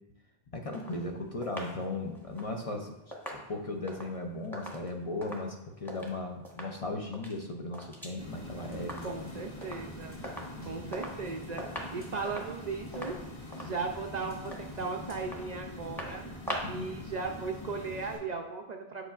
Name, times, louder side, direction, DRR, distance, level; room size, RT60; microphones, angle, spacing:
voice 1, 0.5-2.9 3.3-9.3 10.5-11.0 16.6-16.9, left 2 dB, 45° left, 2 dB, 0.5 m, -37 dB
sound 1, 0.7-6.2 6.4-6.8 7.1-8.2 8.5-9.3 9.6-9.9 10.2-11.3 11.6-16.9 17.2-17.3, equal, ahead, 1.0 m, -43 dB
sound 2, 8.2-18.2, left 1 dB, 25° left, 1.8 m, -44 dB
Rain, 8.3-15.2, left 1 dB, 60° left, 2.2 m, -59 dB
voice 2, 9.0-10.2 10.6-11.6 11.9-13.2 13.6-16.3 16.7-19.1, right 4 dB, 55° right, 2 dB, 0.5 m, -37 dB
8.0 x 5.5 x 2.4 m, 0.90 s
omnidirectional pair, 1.0 m